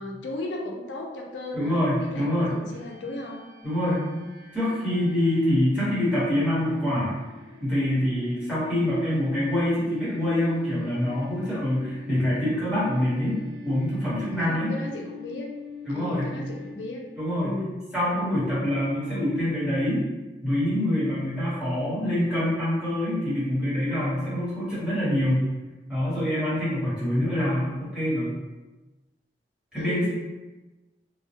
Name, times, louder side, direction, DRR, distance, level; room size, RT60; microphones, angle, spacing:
voice 1, 0.0-3.5 14.4-15.5 15.9-17.0 17.4-17.8 29.8-30.1, left 2 dB, 90° left, 1 dB, 0.4 m, -36 dB
voice 2, 1.5-2.5 3.6-4.3 4.5-7.1 7.6-13.4 13.6-14.7 15.8-16.4 17.2-17.6 17.9-20.0 20.4-25.5 25.9-28.4 29.7-30.1, left 1 dB, 5° right, -12 dB, 1.1 m, -25 dB
sound 1, 2.7-17.2, left 5 dB, 90° right, 0.4 m, -44 dB
2.2 x 2.1 x 2.8 m, 1.1 s
head